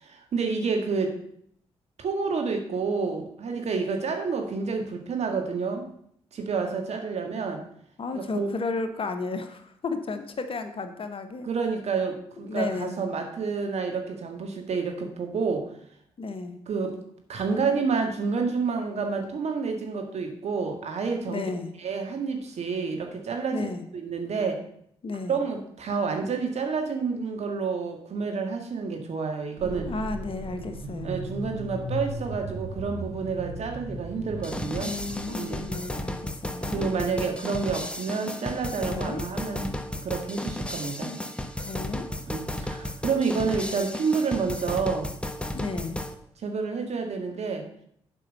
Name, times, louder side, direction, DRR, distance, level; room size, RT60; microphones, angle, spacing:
voice 1, 0.0-1.2 2.0-5.8 6.3-7.6 8.1-8.5 11.4-15.7 16.7-17.0 17.3-21.5 21.8-23.7 23.9-24.6 25.3-29.9 31.0-34.9 35.3-35.7 36.7-39.7 40.0-41.1 42.3-45.1 46.4-47.6, right 5 dB, 60° right, 4 dB, 1.7 m, -29 dB
voice 2, 8.0-11.5 12.4-13.0 16.2-16.5 21.3-21.7 23.5-23.8 25.0-25.4 29.8-31.2 34.8-36.9 38.8-39.2 41.0-41.2 41.6-42.1 45.5-46.0, left 3 dB, 45° left, 7 dB, 1.2 m, -33 dB
sound 1, 29.6-35.8, right 1 dB, 80° right, 1.3 m, -37 dB
sound 2, 34.4-46.1, left 1 dB, 10° left, 1.0 m, -34 dB
7.3 x 5.5 x 6.6 m, 0.69 s
hypercardioid pair, 45°, 12 cm